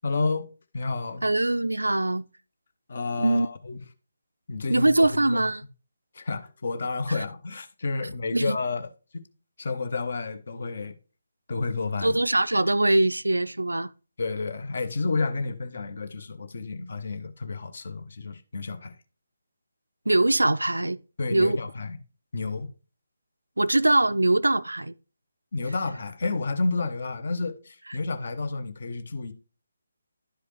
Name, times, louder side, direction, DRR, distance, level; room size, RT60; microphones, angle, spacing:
voice 1, 0.0-1.2 2.9-3.8 4.5-5.4 6.1-8.9 9.6-10.9 11.5-12.2 14.2-19.0 21.2-22.0 22.3-22.7 25.5-29.3, left 3 dB, 50° left, 0.7 m, -30 dB
voice 2, 1.2-2.3 3.2-3.5 4.7-5.6 8.3-8.6 12.0-13.9 20.1-21.0 21.3-21.6 23.6-24.9, right 2 dB, 75° right, 0.3 m, -22 dB
11.5 x 4.9 x 3.0 m
figure-of-eight pair, 145°, 0 cm